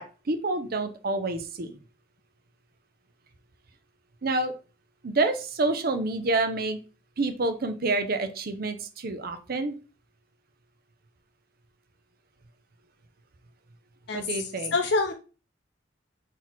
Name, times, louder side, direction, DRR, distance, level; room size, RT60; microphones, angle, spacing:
voice 1, 0.0-1.7 4.2-4.5 5.0-6.8 7.2-9.7 14.1-14.7, right 2 dB, 55° right, 9 dB, 0.6 m, -28 dB
voice 2, 14.1-14.4 14.7-15.1, left 3 dB, 65° left, 4 dB, 0.5 m, -26 dB
4.0 x 2.9 x 4.4 m, 0.35 s
head